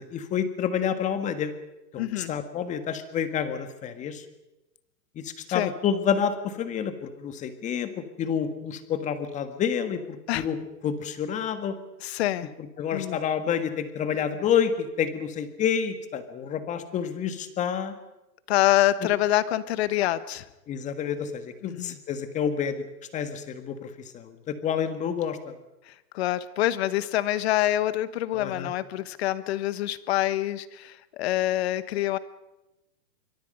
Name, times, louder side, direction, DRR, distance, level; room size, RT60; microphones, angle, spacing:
voice 1, 0.0-1.5 1.9-4.2 5.1-10.6 10.8-11.7 12.8-17.9 20.7-22.7 23.1-25.5 28.3-28.7, left 8 dB, 15° left, 9 dB, 1.6 m, -29 dB
voice 2, 2.0-2.3 5.5-5.7 10.3-10.5 12.0-12.5 12.9-13.2 18.5-20.5 21.6-21.9 25.9-32.2, left 14 dB, 40° left, 15 dB, 1.3 m, -26 dB
26.0 x 24.0 x 5.4 m, 0.96 s
hypercardioid pair, 155°, 48 cm